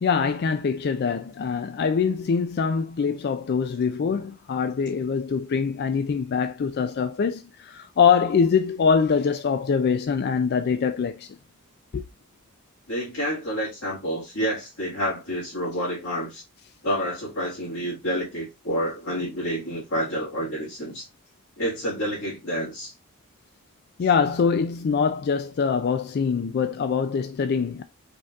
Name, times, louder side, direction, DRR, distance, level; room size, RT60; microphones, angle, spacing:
voice 1, 0.0-11.3 11.9-12.0 24.0-27.8, left 6 dB, 50° left, 0.3 m, -24 dB
voice 2, 12.9-16.4 16.8-21.1 21.6-22.9, equal, 65° left, 1.9 m, -29 dB
5.2 x 3.7 x 2.4 m
head